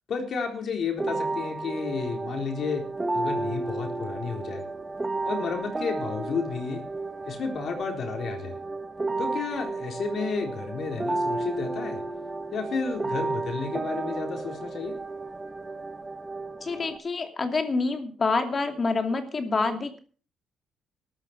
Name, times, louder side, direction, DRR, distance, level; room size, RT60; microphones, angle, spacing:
voice 1, 0.1-2.8 3.1-4.6 5.2-6.8 7.3-8.6 9.2-12.0 12.5-15.0, left 5 dB, 60° left, 3 dB, 4.1 m, -32 dB
sound 1, 1.0-17.0, right 2 dB, 20° right, 1.6 m, -32 dB
voice 2, 16.6-20.0, left 3 dB, 35° left, 6 dB, 2.7 m, -27 dB
14.0 x 11.5 x 6.0 m, 0.41 s
cardioid pair, 90°, 0 cm